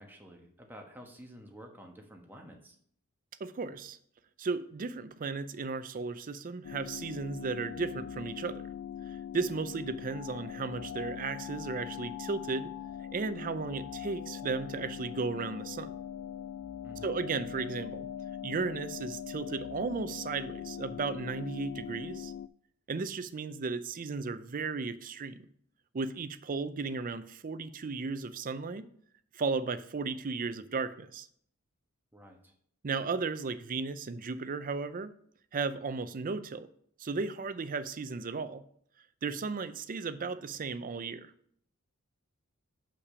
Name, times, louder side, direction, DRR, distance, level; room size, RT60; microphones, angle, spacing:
voice 1, 0.0-2.8 16.8-17.2 32.1-32.5, equal, 10° right, 2 dB, 1.2 m, -50 dB
voice 2, 3.4-4.0 4.4-8.6 9.1-12.7 13.1-15.9 17.0-18.1 18.4-22.3 22.9-25.4 25.9-28.9 29.3-31.3 32.8-35.1 35.5-36.7 37.0-38.6 39.2-41.3, right 4 dB, 40° right, 12 dB, 0.5 m, -35 dB
sound 1, 6.6-22.5, left 9 dB, 90° left, 0.3 m, -41 dB
6.7 x 5.8 x 4.9 m, 0.63 s
head